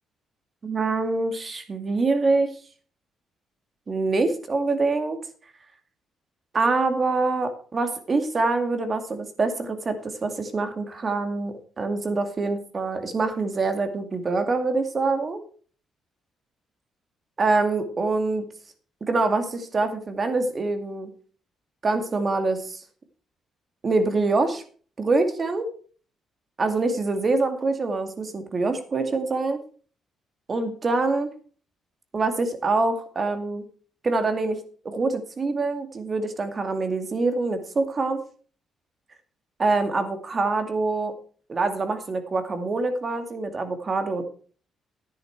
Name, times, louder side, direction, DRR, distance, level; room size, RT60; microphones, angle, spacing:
voice 1, 0.6-2.6 3.9-5.2 6.5-15.4 17.4-18.4 19.1-21.1 21.8-22.8 23.8-24.6 25.0-25.7 26.6-29.6 30.5-31.3 32.1-33.6 34.0-38.2 39.6-41.1 41.5-44.2, right 3 dB, 35° right, 7 dB, 2.2 m, -25 dB
10.5 x 10.5 x 4.6 m, 0.42 s
cardioid pair, 90°, 0 cm